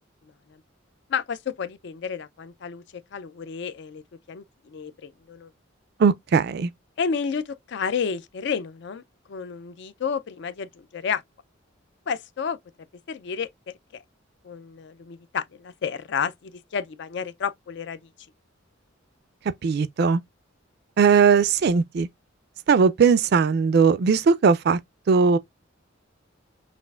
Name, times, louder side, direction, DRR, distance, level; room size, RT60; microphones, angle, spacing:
voice 1, 1.1-4.0 4.3-5.5 7.0-9.0 9.3-11.2 12.1-12.6 13.1-13.5 13.9-14.0 14.4-18.0, left 6 dB, 60° left, 0.4 m, -31 dB
voice 2, 6.0-6.7 19.6-20.2 21.0-22.1 22.7-24.8 25.1-25.4, right 5 dB, 55° right, 0.3 m, -19 dB
6.0 x 2.4 x 2.3 m
head